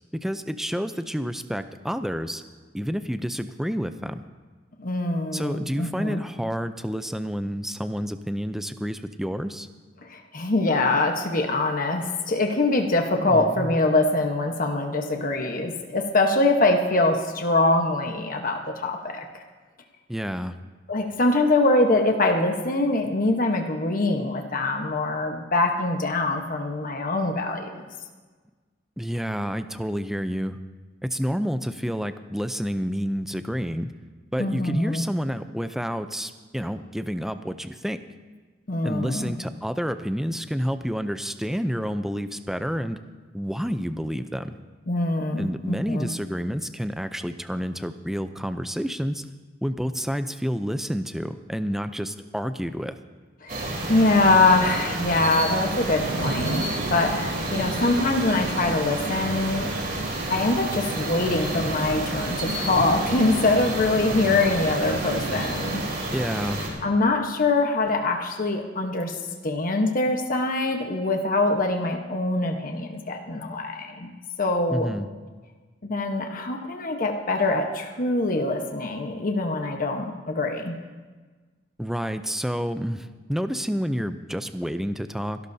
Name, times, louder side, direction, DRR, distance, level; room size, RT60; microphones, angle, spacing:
voice 1, 0.2-2.4 2.7-4.2 5.3-9.7 13.2-13.7 20.1-20.5 29.0-30.6 31.0-33.9 34.3-38.0 38.8-43.0 43.3-44.6 45.4-49.2 49.6-53.0 66.1-66.6 74.7-75.1 81.8-85.4, equal, ahead, 10 dB, 0.5 m, -29 dB
voice 2, 4.8-6.2 10.1-19.4 20.9-27.8 34.4-35.0 38.7-39.3 44.9-46.1 53.4-53.6 53.9-56.6 56.9-59.7 60.3-65.8 66.8-69.2 69.4-74.1 74.4-74.9 75.8-80.8, left 2 dB, 45° left, 3 dB, 1.1 m, -23 dB
sound 1, 53.5-66.7, right 1 dB, 50° right, 3.4 m, -30 dB
sound 2, 56.0-65.9, right 2 dB, 80° right, 0.8 m, -35 dB
29.0 x 12.0 x 2.8 m, 1.4 s
head